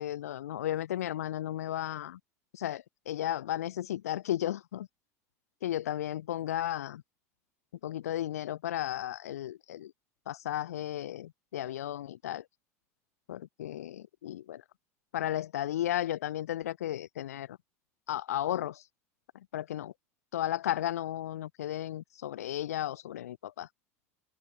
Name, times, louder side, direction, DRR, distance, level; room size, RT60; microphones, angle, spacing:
voice 1, 0.0-2.2 2.5-4.9 5.6-7.0 7.8-9.9 10.3-12.4 13.3-14.6 15.1-17.6 18.1-18.8 19.5-19.9 20.3-23.7, left 12 dB, 90° left, 3.9 m, -34 dB
hypercardioid pair, 95°, 8 cm